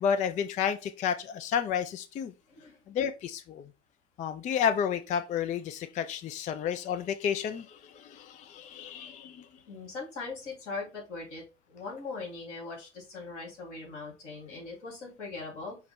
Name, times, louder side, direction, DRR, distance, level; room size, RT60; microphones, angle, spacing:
voice 1, 0.0-2.3 2.9-3.6 4.2-9.4, left 7 dB, 20° left, 0.4 m, -31 dB
voice 2, 9.7-15.8, left 3 dB, 75° left, 2.6 m, -40 dB
5.5 x 2.1 x 4.2 m
figure-of-eight pair, 75°, 36 cm